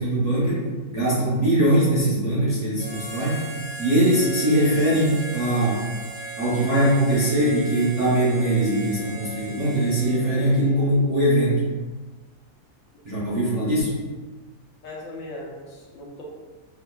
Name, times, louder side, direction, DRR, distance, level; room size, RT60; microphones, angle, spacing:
voice 1, 0.0-3.5 3.8-5.8 6.4-11.6 13.0-14.0, right 1 dB, 35° right, -9 dB, 0.7 m, -21 dB
Harmonica, 2.8-10.8, right 2 dB, 55° right, 1.3 m, -37 dB
voice 2, 14.8-16.2, left 1 dB, 70° left, -3 dB, 1.0 m, -38 dB
4.4 x 2.3 x 2.3 m, 1.3 s
omnidirectional pair, 1.5 m